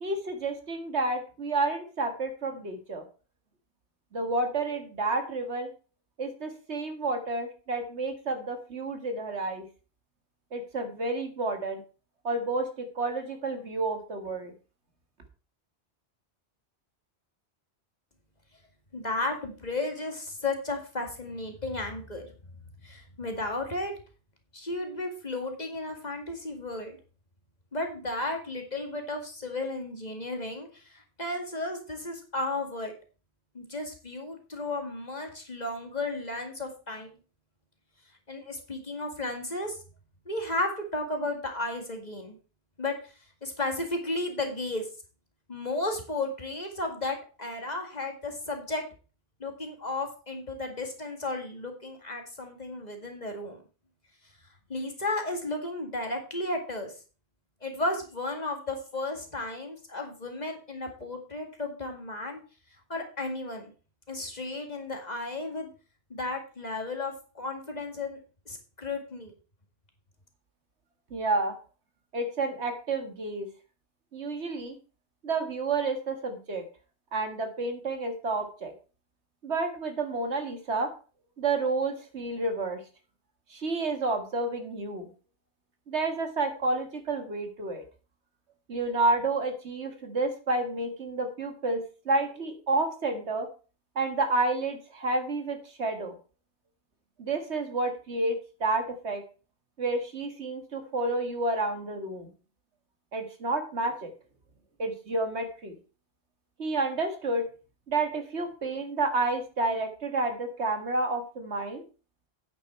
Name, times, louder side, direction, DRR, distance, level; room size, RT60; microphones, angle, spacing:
voice 1, 0.0-3.0 4.1-5.7 6.2-9.6 10.5-11.8 12.2-14.5 71.1-71.6 72.1-73.5 74.1-74.8 75.2-76.6 77.1-78.7 79.4-80.9 81.4-82.8 83.5-85.1 85.9-87.8 88.7-93.5 94.0-96.2 97.2-99.2 99.8-102.3 103.1-104.1 104.8-105.8 106.6-107.4 107.9-111.8, right 2 dB, 75° right, 6 dB, 2.0 m, -30 dB
voice 2, 18.9-22.3 22.8-23.9 24.5-27.0 27.7-32.9 33.5-37.1 38.3-39.8 40.3-42.4 42.8-43.1 43.4-44.9 45.5-48.8 49.4-53.6 54.7-56.9 57.6-62.4 62.9-63.7 64.1-65.7 66.1-68.2 68.5-69.3, left 2 dB, 40° left, 3 dB, 2.2 m, -34 dB
9.6 x 8.7 x 4.4 m, 0.35 s
omnidirectional pair, 1.1 m